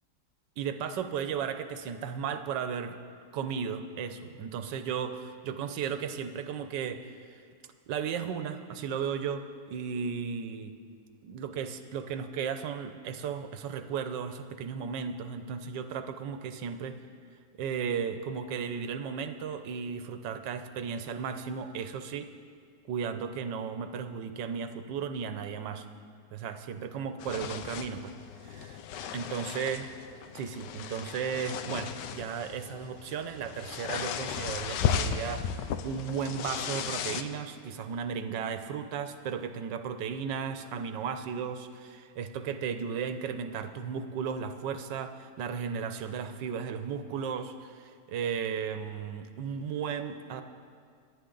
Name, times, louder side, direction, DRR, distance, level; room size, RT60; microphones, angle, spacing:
voice 1, 0.6-3.0 3.3-7.1 7.9-10.7 11.2-17.0 17.6-22.3 22.9-25.8 26.3-28.1 28.4-28.8 29.1-29.8 30.3-50.4, right 7 dB, 90° right, 9 dB, 1.5 m, -35 dB
sound 1, 27.2-37.2, left 8 dB, 85° left, 1.3 m, -35 dB
24.5 x 10.0 x 3.9 m, 2.1 s
omnidirectional pair, 1.9 m